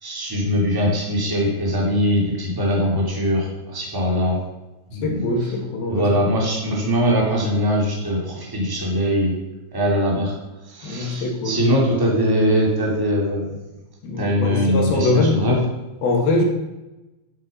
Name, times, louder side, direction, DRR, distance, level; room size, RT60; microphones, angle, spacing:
voice 1, 0.0-4.4 4.9-5.5 5.9-9.3 9.7-10.3 10.7-13.5 14.2-15.6, equal, 5° right, -3 dB, 2.6 m, -21 dB
voice 2, 5.0-6.1 10.8-11.6 14.0-15.4 16.0-16.4, left 2 dB, 85° left, 1 dB, 4.0 m, -22 dB
11.5 x 8.4 x 5.7 m, 1.0 s
omnidirectional pair, 4.2 m